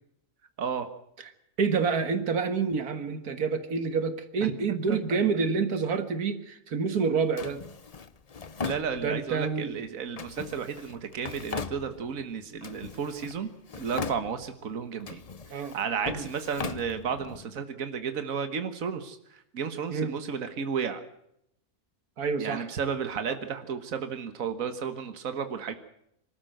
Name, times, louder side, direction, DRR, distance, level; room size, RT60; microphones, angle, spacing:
voice 1, 0.6-0.9 4.4-5.0 8.6-13.5 13.8-15.2 15.5-21.0 22.4-25.7, right 6 dB, 65° right, 8 dB, 1.9 m, -33 dB
voice 2, 1.6-7.6 9.0-9.7 15.5-15.8 16.1-16.3 19.9-20.2 22.2-22.7, right 5 dB, 85° right, 9 dB, 2.1 m, -28 dB
Drawer open or close, 7.4-9.4 10.2-12.3 12.6-13.4 13.7-14.6 15.0-17.4, left 5 dB, 35° left, 0.7 m, -39 dB
25.5 x 13.0 x 7.9 m, 0.75 s
omnidirectional pair, 1.5 m